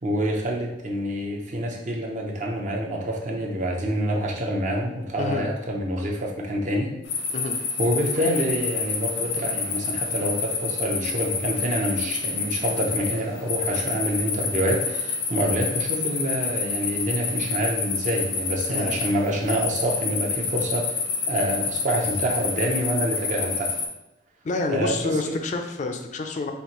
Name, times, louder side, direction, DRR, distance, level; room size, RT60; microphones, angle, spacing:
voice 1, 0.0-6.9 7.8-21.0 21.3-23.7 24.7-25.4, equal, 40° right, 0 dB, 0.7 m, -27 dB
sound 1, 7.1-23.9, left 5 dB, 85° left, 0.8 m, -28 dB
voice 2, 24.4-26.5, left 3 dB, 40° left, 5 dB, 0.3 m, -28 dB
5.2 x 2.5 x 3.0 m, 0.93 s
head